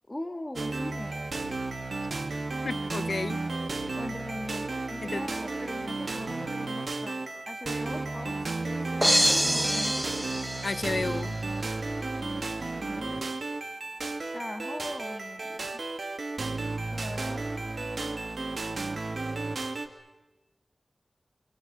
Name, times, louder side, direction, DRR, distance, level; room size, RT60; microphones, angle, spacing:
voice 1, 0.1-1.2 3.9-8.4 8.6-10.1 12.8-13.3 14.3-15.7 16.9-17.9, left 1 dB, 25° left, 5 dB, 2.2 m, -41 dB
sound 1, 0.6-19.9, right 3 dB, 70° right, 2.1 m, -33 dB
voice 2, 2.6-3.4 5.1-5.2 10.6-11.4, left 3 dB, 65° left, 17 dB, 0.8 m, -31 dB
sound 2, 9.0-11.3, right 1 dB, 10° right, 1.3 m, -26 dB
29.0 x 25.5 x 6.9 m, 1.1 s
wide cardioid pair, 55°, 0 cm